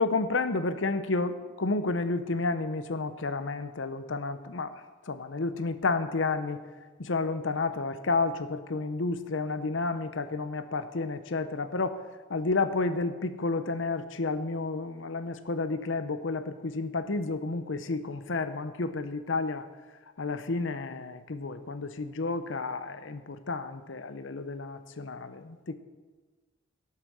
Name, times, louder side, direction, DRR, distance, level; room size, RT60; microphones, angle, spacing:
voice 1, 0.0-4.7 5.1-6.6 7.0-12.0 12.3-19.7 20.2-25.7, left 3 dB, 75° left, 11 dB, 0.8 m, -31 dB
12.0 x 8.2 x 6.3 m, 1.3 s
head